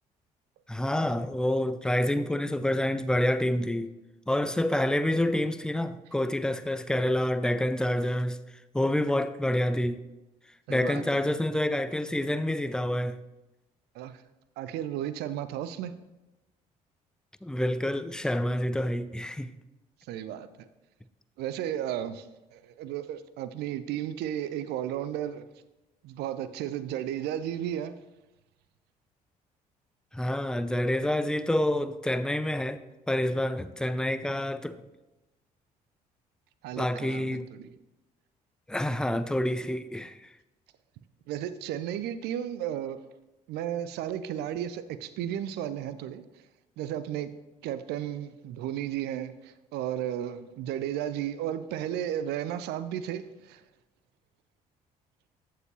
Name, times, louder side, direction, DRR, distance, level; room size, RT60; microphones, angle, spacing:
voice 1, 0.7-3.9 4.3-8.4 8.7-10.0 10.7-13.2 17.4-19.5 30.1-32.8 33.1-34.8 36.8-37.5 38.7-40.3, left 1 dB, 5° left, 0.4 m, -28 dB
voice 2, 10.7-11.3 13.9-14.2 14.6-16.0 20.1-20.7 21.4-25.5 26.0-28.0 36.6-37.7 41.3-43.0 43.5-46.4 46.8-47.3 47.6-53.6, right 11 dB, 55° right, 0.5 m, -34 dB
14.0 x 4.8 x 2.9 m
figure-of-eight pair, 45°, 20 cm